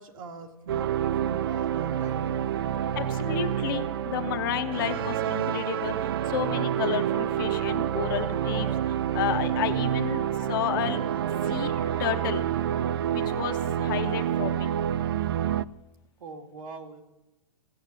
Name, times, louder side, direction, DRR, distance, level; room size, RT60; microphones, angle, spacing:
voice 1, 0.0-3.0 16.2-17.0, right 3 dB, 65° right, 3 dB, 2.2 m, -43 dB
sound 1, 0.7-15.6, right 10 dB, 40° right, 0.4 m, -28 dB
voice 2, 3.0-11.0 11.4-11.7 12.0-12.4 13.1-14.7, left 10 dB, 35° left, 6 dB, 1.0 m, -31 dB
sound 2, 4.7-13.3, left 4 dB, 10° left, 0.9 m, -52 dB
15.5 x 8.6 x 7.6 m, 1.0 s
hypercardioid pair, 170°, 19 cm